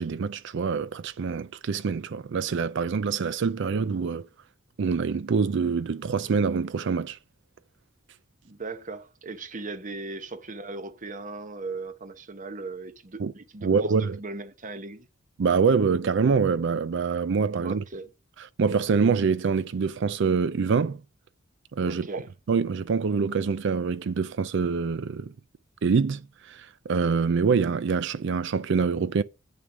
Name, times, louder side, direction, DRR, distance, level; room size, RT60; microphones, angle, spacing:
voice 1, 0.0-4.3 4.8-7.2 13.2-13.3 13.6-14.2 15.4-17.8 18.6-21.0 21.7-22.2 22.5-25.3 25.8-26.2 26.5-29.2, right 5 dB, 65° right, 0.4 m, -25 dB
voice 2, 8.4-15.1 17.6-18.1 21.9-22.3, right 3 dB, 40° right, 0.9 m, -38 dB
8.8 x 6.4 x 4.9 m
head